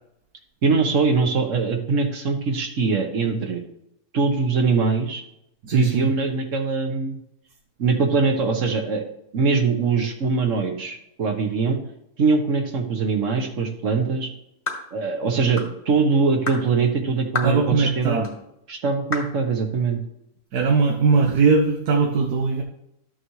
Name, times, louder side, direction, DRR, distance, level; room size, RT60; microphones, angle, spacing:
voice 1, 0.6-3.6 4.1-5.2 5.7-7.2 7.8-9.0 9.3-11.8 12.2-14.3 14.9-18.2 18.7-20.0, right 4 dB, 60° right, 4 dB, 1.4 m, -22 dB
voice 2, 5.6-6.1 17.4-18.3 20.5-22.6, right 4 dB, 85° right, 2 dB, 1.4 m, -20 dB
sound 1, 14.7-14.9 15.6-15.8 16.5-16.6 17.3-17.6 18.2-18.3 19.1-19.3, left 2 dB, 20° left, 1.3 m, -29 dB
12.5 x 6.5 x 3.1 m, 0.80 s
omnidirectional pair, 1.6 m